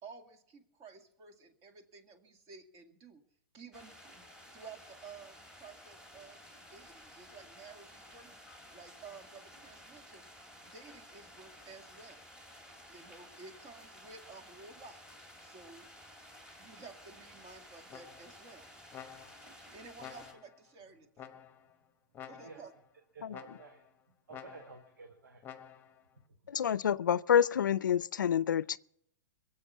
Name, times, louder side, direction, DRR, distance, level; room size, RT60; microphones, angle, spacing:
voice 1, 0.0-3.2 3.5-4.3 4.5-8.3 8.7-10.2 10.6-12.3 12.9-15.0 15.4-15.9 16.6-18.7 19.5-21.4 22.3-22.7, right 4 dB, 35° right, 2.2 m, -53 dB
sound 1, 3.7-20.3, equal, 10° right, 3.3 m, -54 dB
sound 2, 17.9-18.5 18.9-19.6 20.0-20.6 21.2-21.8 22.1-22.8 23.3-23.9 24.3-24.9 25.4-26.0, left 8 dB, 20° left, 1.1 m, -50 dB
voice 2, 22.2-22.6 23.1-23.9 24.3-25.4 26.3-26.5, right 4 dB, 90° right, 1.8 m, -53 dB
voice 3, 26.5-28.8, left 8 dB, 90° left, 0.5 m, -27 dB
22.0 x 8.0 x 7.0 m
hypercardioid pair, 130°, 10 cm